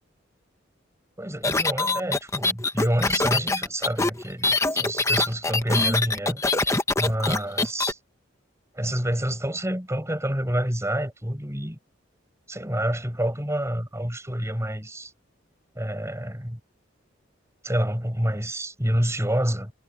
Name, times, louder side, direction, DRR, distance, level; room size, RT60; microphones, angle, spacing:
voice 1, 1.2-6.4 7.0-8.0 8.7-11.8 12.5-15.1 15.8-16.6 17.6-19.7, right 1 dB, 15° right, 7.3 m, -28 dB
sound 1, 1.4-7.9, left 3 dB, 15° left, 1.1 m, -23 dB
head